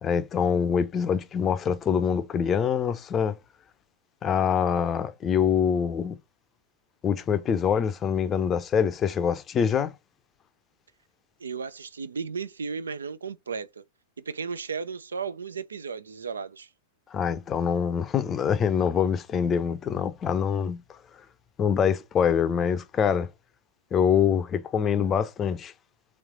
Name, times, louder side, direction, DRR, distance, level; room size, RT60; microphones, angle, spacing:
voice 1, 0.0-3.3 4.2-6.1 7.0-9.9 17.1-20.8 21.6-23.3 23.9-25.7, left 7 dB, 25° left, 0.5 m, -25 dB
voice 2, 11.4-13.8 14.3-16.7, right 5 dB, 75° right, 0.3 m, -34 dB
3.2 x 3.1 x 3.7 m
figure-of-eight pair, 100°, 0 cm